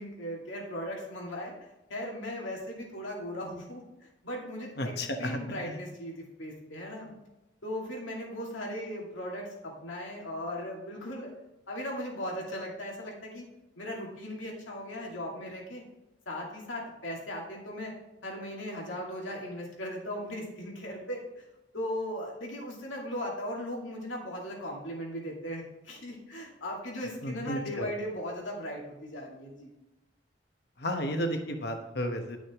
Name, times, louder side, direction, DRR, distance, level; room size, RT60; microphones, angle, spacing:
voice 1, 0.0-1.5 1.9-3.8 4.2-7.1 7.6-11.3 11.7-13.5 13.8-15.8 16.3-17.9 18.2-21.4 21.7-29.7, equal, 90° left, -2 dB, 2.4 m, -38 dB
voice 2, 4.8-5.8 27.2-27.9 30.8-32.4, equal, 55° left, 5 dB, 1.1 m, -33 dB
11.5 x 6.1 x 3.6 m, 0.96 s
head